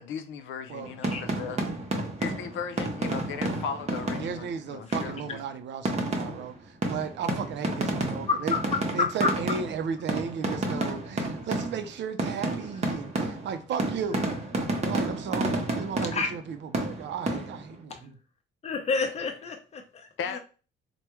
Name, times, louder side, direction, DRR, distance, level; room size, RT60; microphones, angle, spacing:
voice 1, 0.0-1.6 2.2-5.4 20.2-20.4, left 6 dB, 80° left, 0.5 m, -36 dB
sound 1, 0.8-4.5 4.9-5.3 5.8-11.9 12.2-16.5 16.7-17.7, right 2 dB, 35° right, 0.8 m, -31 dB
voice 2, 4.2-8.6 8.9-14.2 14.9-18.1, right 6 dB, 65° right, 0.5 m, -35 dB
voice 3, 8.3-9.3 15.7-15.8 16.1-16.3 17.9-18.1 18.6-20.4, left 4 dB, 35° left, 0.7 m, -29 dB
3.4 x 2.2 x 3.0 m
cardioid pair, 90°, 20 cm